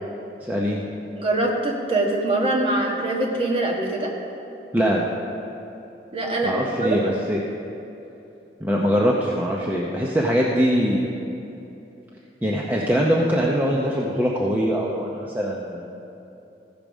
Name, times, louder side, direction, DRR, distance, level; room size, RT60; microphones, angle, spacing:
voice 1, 0.4-0.8 4.7-5.0 6.4-7.4 8.6-11.1 12.4-15.9, equal, 10° right, -3 dB, 0.7 m, -22 dB
voice 2, 1.1-4.1 6.1-7.0, right 2 dB, 30° right, -2 dB, 1.4 m, -23 dB
15.0 x 5.2 x 6.2 m, 2.8 s
head